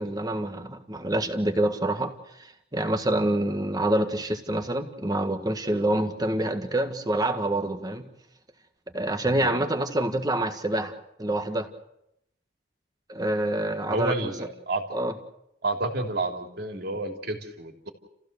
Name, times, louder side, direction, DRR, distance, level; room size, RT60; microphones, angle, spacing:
voice 1, 0.0-2.1 2.4-8.1 8.9-11.7 13.1-14.3 14.9-15.1, right 1 dB, 20° right, 6 dB, 1.7 m, -27 dB
voice 2, 13.9-14.8 15.6-17.9, right 2 dB, 55° right, 3 dB, 3.2 m, -30 dB
30.0 x 15.5 x 6.8 m, 0.82 s
head